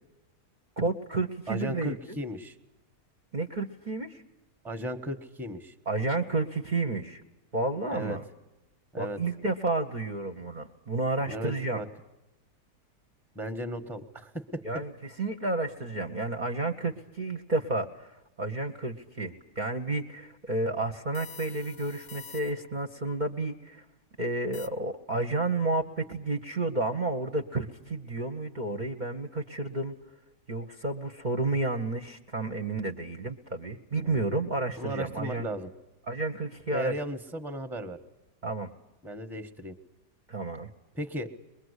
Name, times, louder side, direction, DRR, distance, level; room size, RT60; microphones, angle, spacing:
voice 1, 0.8-2.0 3.3-4.2 5.9-7.2 7.5-8.2 9.0-11.8 14.6-23.8 24.2-29.9 30.5-35.5 36.1-37.0 38.4-38.7 40.3-40.7, right 2 dB, 35° right, 5 dB, 1.0 m, -31 dB
voice 2, 1.5-2.5 4.6-5.7 7.9-8.2 8.9-9.2 11.3-11.9 13.3-14.8 33.9-34.3 34.8-35.7 36.7-38.0 39.0-39.8 40.9-41.3, equal, ahead, 9 dB, 1.2 m, -36 dB
sound 1, 21.1-22.8 24.5-24.7, left 5 dB, 40° left, 1.0 m, -47 dB
23.5 x 22.0 x 8.2 m, 0.98 s
omnidirectional pair, 1.7 m